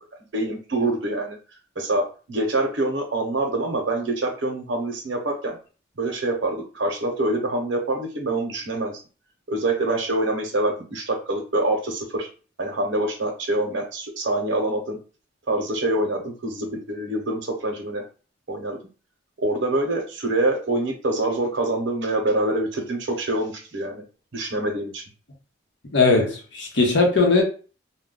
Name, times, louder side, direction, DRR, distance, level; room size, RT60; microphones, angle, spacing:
voice 1, 0.3-1.4 1.8-5.6 6.0-9.0 9.5-12.3 12.6-15.0 15.5-18.0 18.5-18.8 19.4-24.0 24.3-25.0, right 2 dB, 70° right, 0.7 m, -25 dB
voice 2, 25.9-27.4, left 3 dB, 70° left, 0.8 m, -19 dB
2.2 x 2.2 x 3.6 m
head